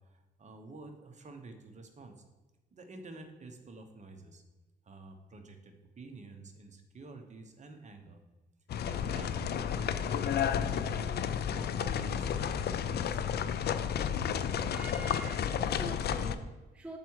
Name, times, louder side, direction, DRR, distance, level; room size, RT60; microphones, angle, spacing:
voice 1, 0.0-2.1 2.7-4.4 4.8-8.2 8.8-11.2 11.5-12.5 12.9-13.2, right 3 dB, 35° right, 1.1 m, -49 dB
sound 1, 8.7-16.4, left 8 dB, 55° left, 0.5 m, -32 dB
voice 2, 14.7-17.0, right 2 dB, 5° right, 0.5 m, -45 dB
6.9 x 4.7 x 4.7 m
cardioid pair, 90°, 20 cm